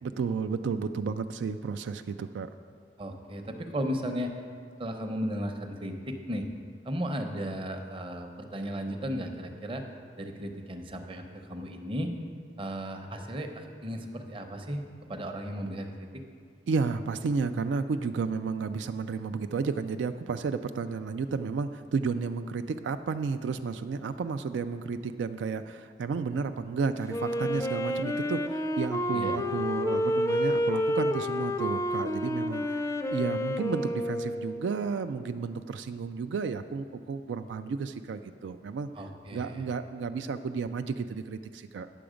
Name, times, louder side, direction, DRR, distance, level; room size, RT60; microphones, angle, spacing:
voice 1, 0.0-2.5 16.7-32.8 33.1-38.9 39.3-41.9, right 5 dB, 85° right, 9 dB, 0.3 m, -32 dB
voice 2, 3.0-4.4 4.8-6.5 6.8-9.8 10.2-12.1 12.6-14.8 15.1-16.2 29.1-29.4 39.0-39.7, equal, 30° right, 4 dB, 0.7 m, -35 dB
Wind instrument woodwind instrument, 27.1-34.8, left 1 dB, 15° left, 0.4 m, -29 dB
10.0 x 6.9 x 5.0 m, 2.1 s
head